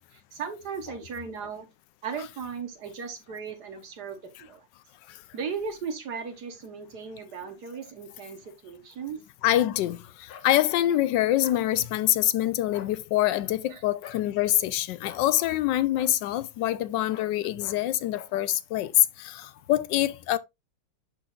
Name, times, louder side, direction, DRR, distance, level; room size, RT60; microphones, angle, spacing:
voice 1, 0.1-1.7 2.0-4.6 5.3-9.2 13.7-13.8, right 6 dB, 65° right, 1.8 m, -37 dB
voice 2, 9.4-18.9 19.2-20.4, left 14 dB, 80° left, 1.2 m, -25 dB
sound 1, 10.3-10.5 11.4-11.6 12.6-12.9 14.0-14.3 15.0-15.3 15.9-16.1 17.1-17.3 17.6-17.8 18.1-18.3, left 8 dB, 60° left, 1.3 m, -45 dB
11.5 x 3.9 x 2.4 m
omnidirectional pair, 1.9 m